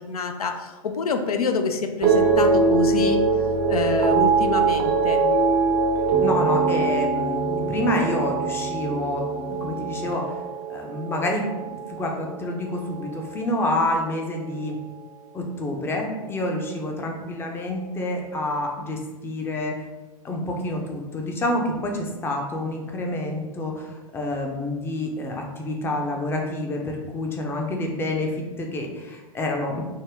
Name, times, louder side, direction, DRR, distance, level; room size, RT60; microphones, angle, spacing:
voice 1, 0.0-3.2 3.7-5.2, left 4 dB, 80° left, 6 dB, 0.4 m, -26 dB
sound 1, 2.0-12.4 12.7-13.2, right 4 dB, 45° right, 0.5 m, -22 dB
voice 2, 6.2-10.4 10.7-14.8 15.3-19.9 20.2-29.8, left 1 dB, 10° left, 1 dB, 0.5 m, -28 dB
3.5 x 2.1 x 3.5 m, 1.2 s
hypercardioid pair, 105°, 19 cm